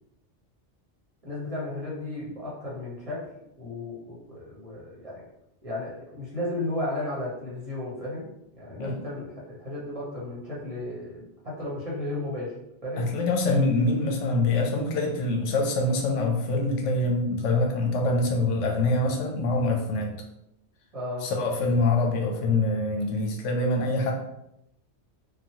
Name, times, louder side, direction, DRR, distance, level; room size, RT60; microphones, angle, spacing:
voice 1, 1.2-3.3 3.6-5.3 5.6-8.3 8.6-12.5 12.8-13.1 20.9-21.3, left 1 dB, 35° right, -6 dB, 0.8 m, -34 dB
voice 2, 13.0-20.2 21.2-24.1, left 2 dB, 90° left, 1 dB, 0.9 m, -25 dB
3.0 x 2.1 x 2.8 m, 0.83 s
omnidirectional pair, 1.2 m